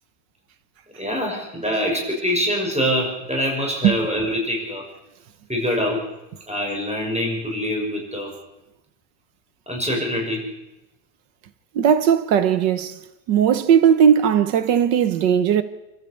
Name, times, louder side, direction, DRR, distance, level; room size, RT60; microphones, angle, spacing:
voice 1, 1.0-4.9 5.5-6.1 6.5-8.3 9.7-10.5, equal, 5° right, 6.4 m, -24 dB
voice 2, 11.8-13.0 13.3-15.6, right 8 dB, 90° right, 1.7 m, -17 dB
27.5 x 13.5 x 8.5 m
omnidirectional pair, 1.9 m